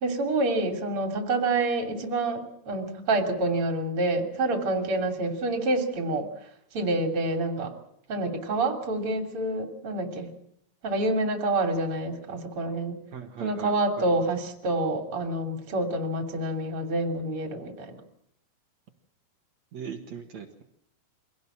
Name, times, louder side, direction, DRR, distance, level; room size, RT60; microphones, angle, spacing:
voice 1, 0.0-6.3 6.7-7.7 8.1-10.3 10.8-13.0 13.4-18.0, right 2 dB, 35° right, 5 dB, 3.5 m, -27 dB
voice 2, 13.1-14.2 19.7-20.6, right 7 dB, 55° right, 5 dB, 2.5 m, -40 dB
24.5 x 17.5 x 7.4 m, 0.72 s
omnidirectional pair, 4.4 m